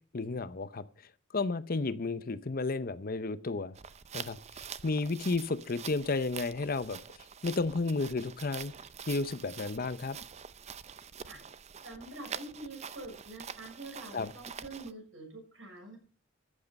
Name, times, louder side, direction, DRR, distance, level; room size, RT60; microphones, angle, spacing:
voice 1, 0.1-0.8 1.3-3.8 4.1-4.4 4.8-8.7 9.1-10.2 14.1-14.3, left 3 dB, 50° left, 14 dB, 0.7 m, -32 dB
sound 1, 3.8-14.9, right 7 dB, 35° right, 0.5 m, -46 dB
voice 2, 11.8-16.0, right 2 dB, 75° right, 2 dB, 6.5 m, -45 dB
14.0 x 8.5 x 5.3 m, 0.39 s
head